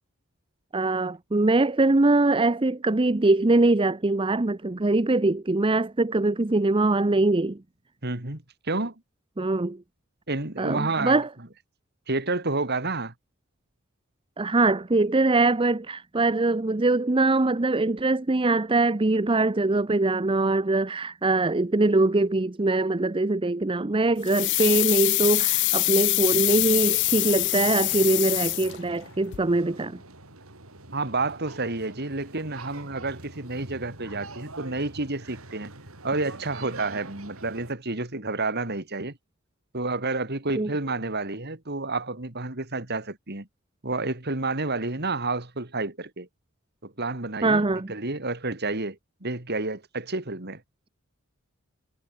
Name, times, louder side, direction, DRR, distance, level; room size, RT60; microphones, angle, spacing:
voice 1, 0.7-7.6 9.4-9.8 10.6-11.3 14.4-30.0 40.6-40.7 47.4-47.9, right 2 dB, 25° right, 0.7 m, -23 dB
voice 2, 8.0-8.9 10.3-11.2 12.1-13.1 30.9-35.7 36.0-39.1 39.7-43.5 43.8-46.3 46.8-50.6, right 3 dB, 50° right, 3.2 m, -30 dB
sound 1, 24.3-29.1 29.3-29.4, left 21 dB, 55° left, 0.4 m, -24 dB
sound 2, 26.3-37.7, right 2 dB, 80° right, 5.3 m, -45 dB
head